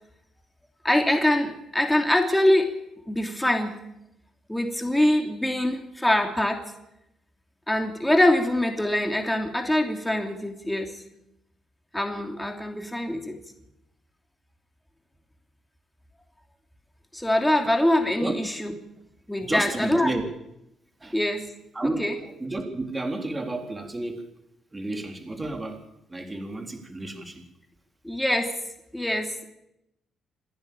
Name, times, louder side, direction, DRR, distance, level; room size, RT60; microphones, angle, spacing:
voice 1, 0.8-2.7 3.1-3.8 4.5-6.6 7.7-11.0 11.9-13.4 17.1-18.7 19.3-20.1 21.1-21.4 22.0-22.1 28.0-28.5 28.9-29.4, left 1 dB, 5° left, 4 dB, 2.9 m, -24 dB
voice 2, 19.4-20.3 21.0-21.2 21.7-24.3 24.7-25.8 26.1-27.4, right 2 dB, 20° right, 4 dB, 3.9 m, -31 dB
27.5 x 10.5 x 8.9 m, 0.85 s
cardioid pair, 90°, 0 cm